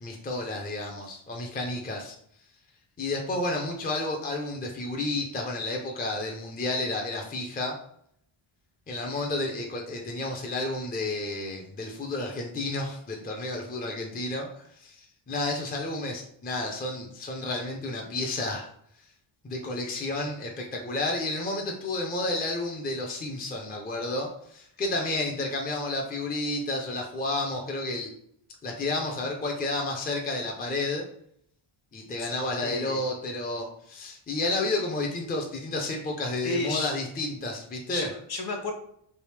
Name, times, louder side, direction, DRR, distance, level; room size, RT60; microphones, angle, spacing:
voice 1, 0.0-2.2 3.0-7.8 8.9-18.7 19.4-28.1 28.6-31.1 31.9-38.1, left 2 dB, 20° left, 1 dB, 0.4 m, -31 dB
voice 2, 32.6-33.0 36.4-36.9 37.9-38.7, left 2 dB, 50° left, 3 dB, 0.7 m, -32 dB
3.3 x 2.8 x 3.1 m, 0.70 s
wide cardioid pair, 165°, 49 cm